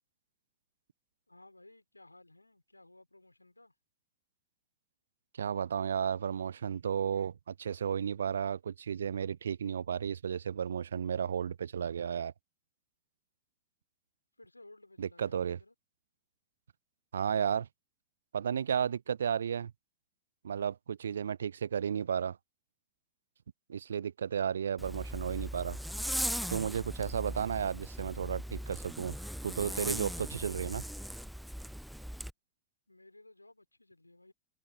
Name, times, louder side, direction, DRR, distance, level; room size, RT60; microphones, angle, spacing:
voice 1, 1.3-3.7 14.4-15.7 32.9-34.3, left 2 dB, 85° left, 5.5 m, -57 dB
voice 2, 5.4-12.3 15.0-15.6 17.1-17.7 18.3-19.7 20.4-22.4 23.7-25.8 26.5-29.1 29.4-30.8, right 8 dB, 70° right, 0.7 m, -33 dB
Zipper (clothing), 24.8-32.3, equal, ahead, 0.7 m, -39 dB
open air
figure-of-eight pair, 90°, 0 cm